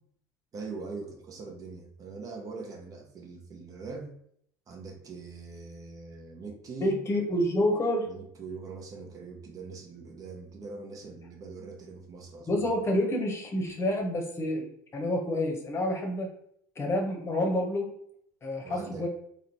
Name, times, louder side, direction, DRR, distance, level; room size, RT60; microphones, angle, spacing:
voice 1, 0.5-4.1 4.7-7.0 8.1-12.7 18.6-19.1, right 4 dB, 40° right, 2 dB, 0.8 m, -42 dB
voice 2, 6.8-8.1 12.5-14.7 14.9-16.3 16.8-17.9 18.4-19.1, left 1 dB, 30° left, 2 dB, 0.9 m, -28 dB
3.7 x 2.1 x 2.9 m, 0.66 s
hypercardioid pair, 75°, 9 cm